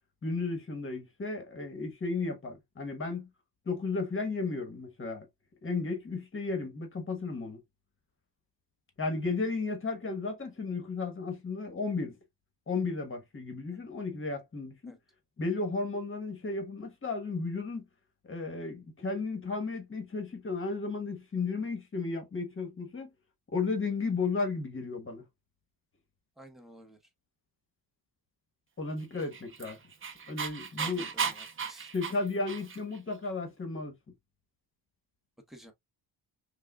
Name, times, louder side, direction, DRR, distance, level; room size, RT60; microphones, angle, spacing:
voice 1, 0.2-3.3 3.7-5.3 5.6-7.6 9.0-12.2 12.7-15.0 15.4-17.8 18.2-23.1 23.5-25.2 28.8-29.8 30.3-31.1 31.9-33.9, left 3 dB, 25° left, 1.2 m, -34 dB
voice 2, 26.4-27.0 30.8-31.9 35.5-35.7, right 1 dB, ahead, 0.9 m, -52 dB
Dog, 29.1-33.0, right 6 dB, 30° right, 0.6 m, -36 dB
5.5 x 2.4 x 2.3 m
cardioid pair, 140°, 45 cm